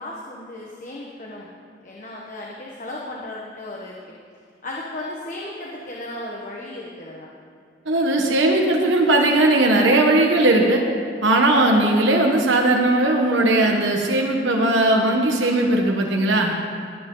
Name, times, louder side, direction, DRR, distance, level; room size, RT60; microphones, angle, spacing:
voice 1, 0.0-1.5 1.8-4.2 4.6-7.3, left 1 dB, 40° left, -3 dB, 1.3 m, -35 dB
voice 2, 7.8-10.8 11.2-16.5, right 2 dB, 90° right, 1 dB, 1.3 m, -18 dB
19.0 x 10.0 x 3.9 m, 2.3 s
head